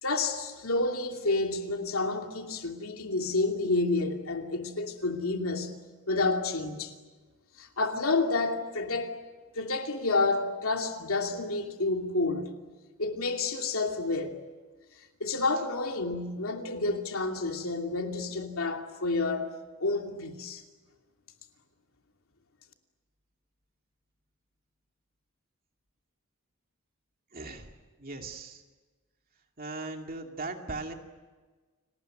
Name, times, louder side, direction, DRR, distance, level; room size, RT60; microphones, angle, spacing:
voice 1, 0.0-5.7 6.1-6.9 7.6-9.2 9.5-12.5 13.0-14.4 15.2-20.6, left 3 dB, 80° left, 2.7 m, -29 dB
voice 2, 27.3-27.7 28.0-28.6 29.6-30.9, right 3 dB, 45° right, 2.5 m, -38 dB
29.5 x 19.5 x 9.3 m
head